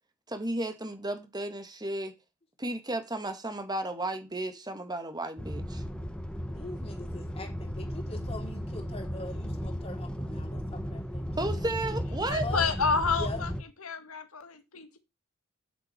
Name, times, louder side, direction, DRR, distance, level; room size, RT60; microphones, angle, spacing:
voice 1, 0.3-2.1 2.6-5.8 11.4-12.5, right 1 dB, 20° right, 1.9 m, -33 dB
sound 1, 5.4-13.6, equal, 5° left, 1.5 m, -35 dB
voice 2, 6.5-11.2 11.5-11.6 12.4-12.7 13.2-13.4, left 3 dB, 30° left, 3.7 m, -42 dB
voice 3, 12.3-15.0, left 5 dB, 80° left, 2.3 m, -30 dB
8.3 x 7.7 x 6.1 m
head